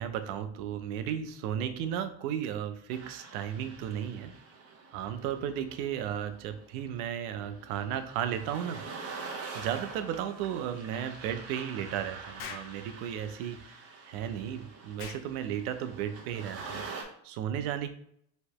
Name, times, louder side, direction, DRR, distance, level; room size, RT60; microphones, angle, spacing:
voice 1, 0.0-4.3 4.9-8.8 9.5-17.9, right 9 dB, 85° right, 9 dB, 0.7 m, -34 dB
sound 1, 2.9-17.0, right 4 dB, 35° right, 0.8 m, -45 dB
Explosion, 12.4-12.7 15.0-15.3, left 6 dB, 70° left, 0.8 m, -42 dB
3.3 x 2.9 x 4.6 m, 0.67 s
cardioid pair, 175°, 43 cm